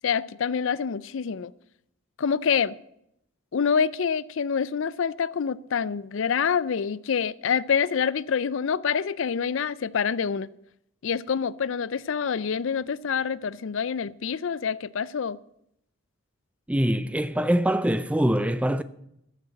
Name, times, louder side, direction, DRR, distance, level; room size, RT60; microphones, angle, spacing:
voice 1, 0.0-1.5 2.2-2.7 3.5-10.5 11.0-15.4, left 6 dB, 60° left, 0.4 m, -26 dB
voice 2, 16.7-18.8, equal, 5° right, 0.4 m, -23 dB
14.0 x 6.7 x 8.7 m
head